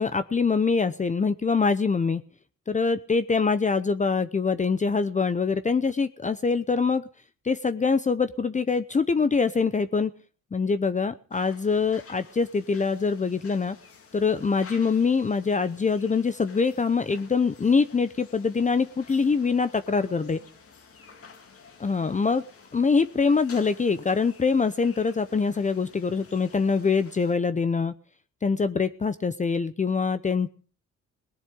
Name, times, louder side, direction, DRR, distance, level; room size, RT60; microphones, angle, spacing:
voice 1, 0.0-2.2 2.7-7.0 7.4-10.1 10.5-13.8 14.1-20.4 21.8-22.4 22.7-27.9 28.4-30.5, left 5 dB, 25° left, 12 dB, 0.8 m, -24 dB
sound 1, 11.3-27.3, left 5 dB, 50° left, 2.6 m, -51 dB
18.5 x 7.3 x 9.6 m, 0.42 s
cardioid pair, 90°, 30 cm